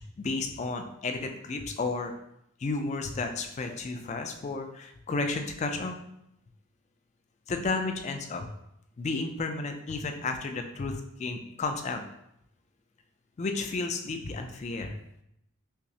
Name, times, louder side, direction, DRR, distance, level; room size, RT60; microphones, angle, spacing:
voice 1, 0.2-2.1 2.6-5.9 7.5-8.5 9.0-12.0 13.4-14.9, left 3 dB, 30° left, 6 dB, 0.3 m, -32 dB
5.6 x 2.0 x 2.7 m, 0.79 s
head